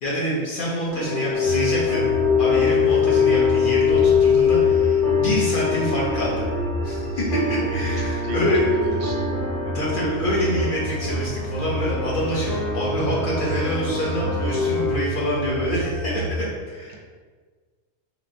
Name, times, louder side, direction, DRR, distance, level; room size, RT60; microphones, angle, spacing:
voice 1, 0.0-6.4 6.8-8.7 9.7-17.0, equal, 50° left, -6 dB, 0.9 m, -26 dB
sound 1, 0.9-15.0, left 6 dB, 30° left, 1.3 m, -23 dB
sound 2, 1.4-16.4, right 1 dB, 60° right, 0.6 m, -30 dB
voice 2, 8.0-9.2 16.9-17.0, right 2 dB, 90° right, 1 dB, 0.9 m, -35 dB
3.2 x 2.8 x 2.6 m, 1.5 s
omnidirectional pair, 1.2 m